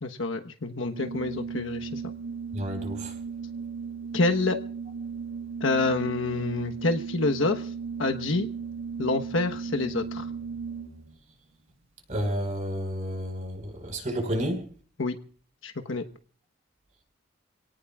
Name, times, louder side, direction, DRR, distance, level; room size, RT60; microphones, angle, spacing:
voice 1, 0.0-2.0 4.1-4.6 5.6-7.6 8.0-8.5 9.0-10.3 15.0-15.2 15.6-16.0, left 2 dB, 80° left, 6 dB, 1.2 m, -27 dB
Organ, 0.9-11.2, right 5 dB, 85° right, 1.6 m, -36 dB
voice 2, 2.5-3.1 12.1-14.6, equal, 40° right, 4 dB, 4.8 m, -31 dB
28.5 x 18.0 x 2.4 m, 0.43 s
head